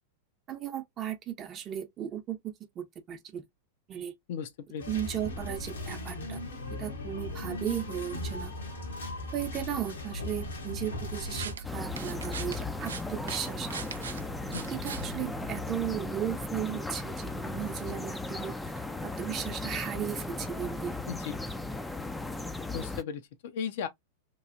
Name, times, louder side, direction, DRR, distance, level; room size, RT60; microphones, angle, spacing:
voice 1, 0.5-3.5 3.9-4.1 4.9-6.4 6.8-8.5 9.3-13.8 14.7-18.5 19.0-21.0, right 10 dB, 35° right, 0.7 m, -36 dB
voice 2, 4.3-4.9 14.5-14.7 21.1-21.3 22.7-23.9, left 7 dB, 60° left, 0.5 m, -36 dB
sound 1, 4.8-11.5, left 2 dB, 75° left, 1.0 m, -38 dB
sound 2, 11.0-15.9, right 5 dB, 75° right, 0.4 m, -41 dB
sound 3, 11.6-23.0, left 2 dB, 5° left, 0.4 m, -36 dB
3.1 x 2.3 x 2.5 m
figure-of-eight pair, 95°, 0 cm